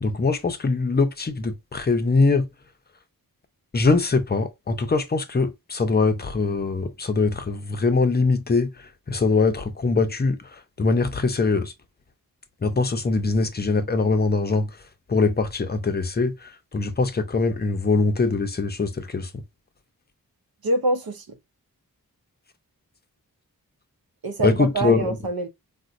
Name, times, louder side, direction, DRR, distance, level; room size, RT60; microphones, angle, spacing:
voice 1, 0.0-2.4 3.7-8.7 9.1-10.4 10.8-11.7 12.6-14.6 15.1-16.3 16.7-18.9 19.1-19.2 24.4-25.0, left 3 dB, 25° left, 0.5 m, -22 dB
voice 2, 20.6-21.4 24.2-25.5, right 2 dB, 75° right, 0.7 m, -25 dB
4.0 x 2.2 x 2.5 m
wide cardioid pair, 110°, 36 cm